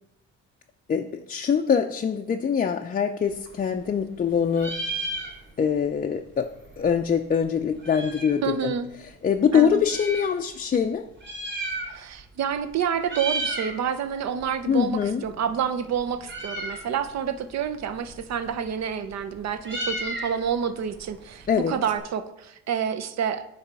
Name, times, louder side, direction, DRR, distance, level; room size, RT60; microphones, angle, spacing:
voice 1, 0.9-4.8 5.6-6.5 6.8-8.7 9.0-11.1 14.7-15.2 21.5-21.8, left 7 dB, 30° left, 4 dB, 0.4 m, -24 dB
Meow, 3.2-4.2 4.5-5.8 6.1-6.2 6.3-8.5 9.1-10.3 11.1-12.2 12.5-12.7 13.0-13.8 14.1-22.0, right 2 dB, 40° right, 2.8 m, -35 dB
voice 2, 8.4-8.9 9.5-9.8 11.9-23.5, right 7 dB, 60° right, 11 dB, 0.7 m, -28 dB
9.7 x 3.3 x 4.7 m, 0.84 s
cardioid pair, 90°, 30 cm